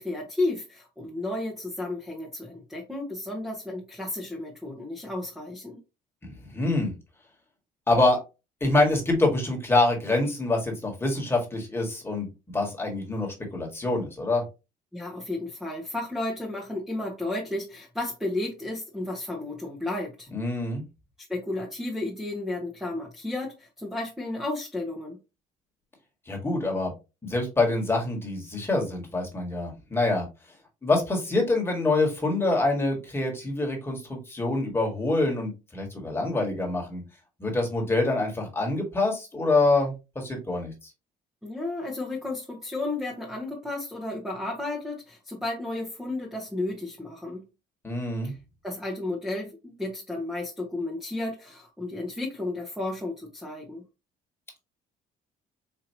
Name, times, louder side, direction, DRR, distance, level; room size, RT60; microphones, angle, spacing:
voice 1, 0.0-5.8 14.9-20.3 21.3-25.2 41.4-47.5 48.2-48.4 48.6-53.8, left 2 dB, 5° right, 1.0 m, -33 dB
voice 2, 6.2-6.9 7.9-8.2 8.6-14.4 20.3-20.8 26.3-26.9 27.2-30.3 30.8-37.0 37.4-40.7 47.8-48.3, left 2 dB, 15° left, 1.6 m, -26 dB
4.4 x 2.7 x 2.8 m
cardioid pair, 110°, 17 cm